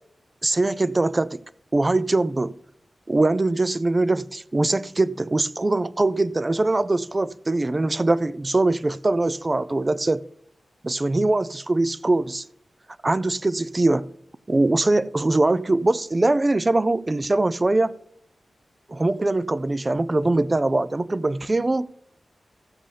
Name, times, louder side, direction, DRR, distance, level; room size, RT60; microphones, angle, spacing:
voice 1, 0.4-1.4 1.7-2.5 3.1-10.2 10.8-12.4 13.0-14.1 14.5-17.9 18.9-21.9, right 2 dB, 25° right, 0.4 m, -22 dB
15.0 x 7.6 x 3.4 m
wide cardioid pair, 110°, 0 cm